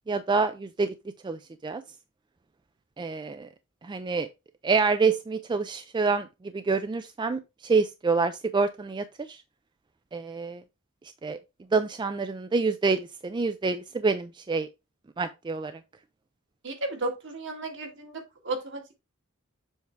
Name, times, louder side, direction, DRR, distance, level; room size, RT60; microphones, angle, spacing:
voice 1, 0.1-0.9 1.2-1.8 3.0-3.5 3.8-4.3 4.6-9.4 10.1-10.6 11.2-11.4 11.7-14.7 15.2-15.8, right 4 dB, 20° right, 0.3 m, -27 dB
voice 2, 16.6-19.0, right 2 dB, 60° right, 1.8 m, -34 dB
7.2 x 3.4 x 4.4 m
head